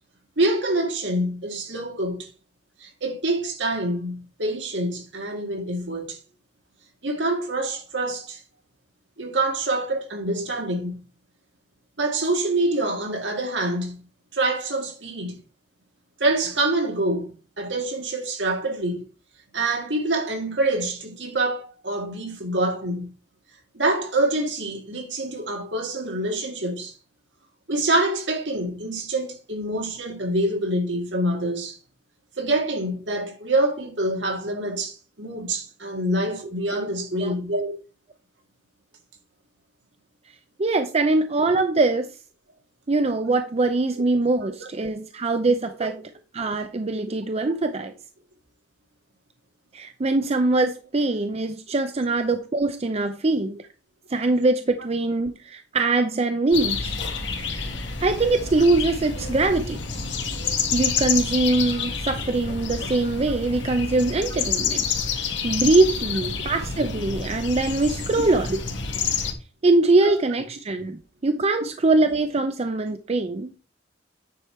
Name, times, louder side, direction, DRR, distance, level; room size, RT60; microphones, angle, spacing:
voice 1, 0.4-2.3 2.8-6.2 7.0-8.4 9.2-11.0 12.0-14.0 14.3-15.4 16.2-17.3 17.6-19.0 19.5-23.1 23.7-26.9 27.7-31.8 32.4-37.8 43.9-44.0 44.6-44.7 61.8-61.9 70.1-70.2, right 2 dB, 70° right, 2.0 m, -26 dB
voice 2, 40.6-42.1 42.9-45.9 46.3-47.9 49.7-53.6 54.1-56.9 58.0-59.8 60.7-64.9 65.4-68.6 69.6-73.5, right 2 dB, 35° right, 0.5 m, -22 dB
sound 1, 56.5-69.3, left 5 dB, 70° left, 1.7 m, -28 dB
9.4 x 5.1 x 4.5 m
head